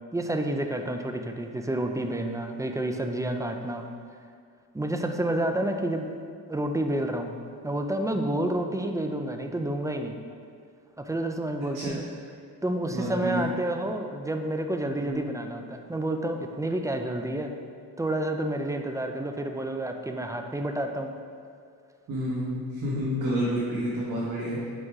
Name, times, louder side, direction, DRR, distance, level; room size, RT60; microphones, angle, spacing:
voice 1, 0.1-3.9 4.7-6.1 6.5-7.3 7.6-10.1 11.0-12.0 12.6-17.5 18.0-21.1, right 1 dB, 10° right, 5 dB, 0.5 m, -29 dB
voice 2, 12.9-13.5 15.0-15.2 22.1-24.7, equal, 60° right, -7 dB, 1.5 m, -29 dB
5.5 x 5.3 x 4.8 m, 2.2 s
cardioid pair, 95°, 36 cm